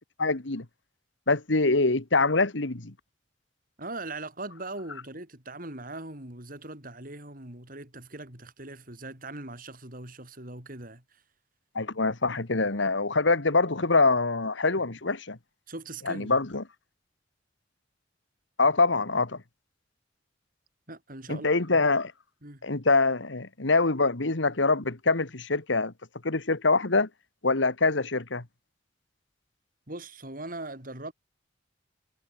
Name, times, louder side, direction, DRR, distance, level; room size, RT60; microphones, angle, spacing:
voice 1, 0.2-0.7 1.3-2.9 11.8-15.4 16.1-16.6 18.6-19.4 21.3-22.1 22.6-25.9 26.2-27.1 27.4-28.4, left 3 dB, 85° left, 1.8 m, -24 dB
voice 2, 3.8-11.2 15.7-16.4 20.9-21.8 22.4-22.7 29.9-31.1, right 2 dB, 50° right, 6.1 m, -40 dB
head